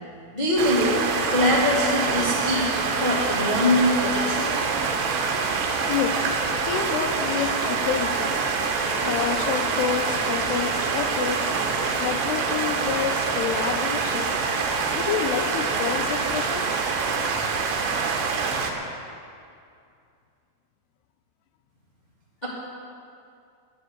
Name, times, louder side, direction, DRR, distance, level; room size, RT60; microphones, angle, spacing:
voice 1, 0.3-1.0 1.3-2.7 3.0-4.5 22.4-22.5, left 1 dB, 25° left, -6 dB, 1.0 m, -22 dB
sound 1, 0.6-18.7, right 4 dB, 80° right, 3.4 m, -25 dB
voice 2, 5.9-6.3 6.6-8.4 9.0-11.6 12.0-14.3 14.9-16.9, left 9 dB, 80° left, 7 dB, 2.7 m, -29 dB
11.0 x 11.0 x 8.0 m, 2.4 s
omnidirectional pair, 4.9 m